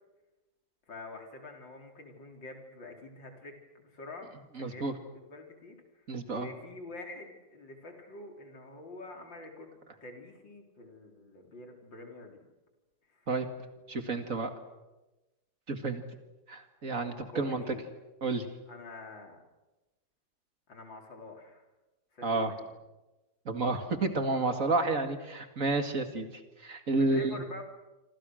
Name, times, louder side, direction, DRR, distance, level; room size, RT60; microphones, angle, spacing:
voice 1, 0.9-3.6 3.8-5.8 6.3-12.4 17.3-17.8 18.7-19.4 20.7-21.6 22.1-22.7 27.0-27.6, left 2 dB, 70° left, 3 dB, 4.6 m, -46 dB
voice 2, 4.6-4.9 6.1-6.5 13.3-13.5 13.9-14.5 15.7-16.0 16.5-17.7 18.2-18.5 22.2-22.5 23.5-27.4, right 3 dB, 45° right, 7 dB, 2.4 m, -30 dB
27.0 x 27.0 x 6.4 m, 1.1 s
omnidirectional pair, 2.1 m